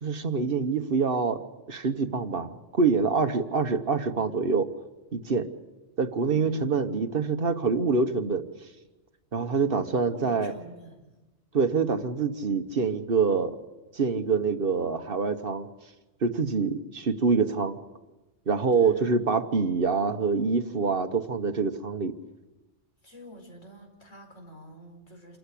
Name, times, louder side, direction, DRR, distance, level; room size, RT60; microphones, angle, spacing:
voice 1, 0.0-1.4 1.7-4.7 5.1-5.5 6.0-8.4 9.3-10.5 11.5-13.6 13.9-15.7 16.2-17.8 18.5-22.1, right 4 dB, 50° right, 8 dB, 1.2 m, -25 dB
voice 2, 6.2-6.7 10.0-11.1 18.7-19.3 23.0-25.4, equal, 85° left, 2 dB, 5.1 m, -47 dB
28.0 x 14.5 x 8.4 m, 1.1 s
omnidirectional pair, 1.2 m